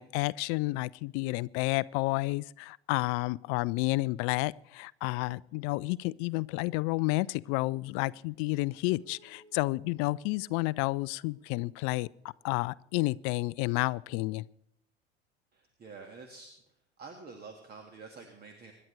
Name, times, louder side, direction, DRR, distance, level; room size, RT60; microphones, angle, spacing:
voice 1, 0.0-12.1 12.4-14.5, left 22 dB, 45° left, 21 dB, 0.4 m, -30 dB
sound 1, 7.6-14.1, right 1 dB, 80° right, 4.7 m, -64 dB
voice 2, 15.5-16.5 17.0-18.7, right 4 dB, 30° right, 4 dB, 1.9 m, -48 dB
25.5 x 11.0 x 3.3 m, 0.76 s
figure-of-eight pair, 75°, 33 cm